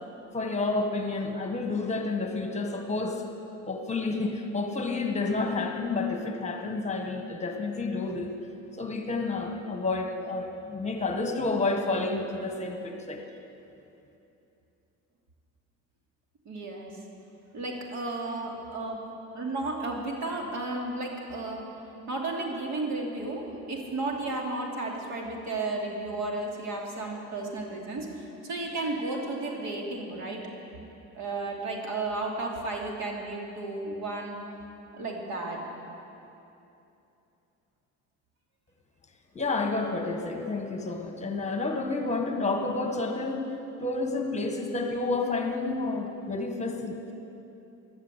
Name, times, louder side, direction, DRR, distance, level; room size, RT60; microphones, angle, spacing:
voice 1, 0.3-3.2 3.7-8.3 8.8-13.2 39.3-43.4 43.8-47.1, left 3 dB, 20° left, 3 dB, 1.6 m, -30 dB
voice 2, 16.4-16.9 17.5-21.6 22.1-30.4 31.1-34.4 34.9-35.6, right 2 dB, 65° right, 0 dB, 3.0 m, -33 dB
14.5 x 11.5 x 8.4 m, 2.8 s
cardioid pair, 115°, 30 cm